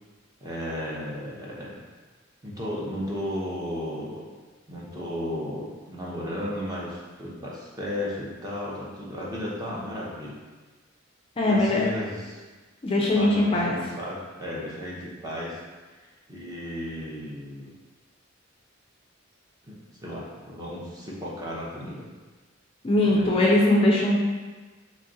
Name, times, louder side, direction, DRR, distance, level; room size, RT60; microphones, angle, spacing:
voice 1, 0.4-1.8 2.4-4.2 4.7-10.4 11.5-12.4 13.1-15.6 15.9-16.0 16.3-17.7 19.6-22.1 23.0-23.4, left 1 dB, 20° right, -5 dB, 0.7 m, -34 dB
voice 2, 11.4-11.8 12.8-13.8 22.8-24.2, left 1 dB, 25° left, -3 dB, 0.4 m, -21 dB
3.1 x 2.4 x 3.9 m, 1.3 s
head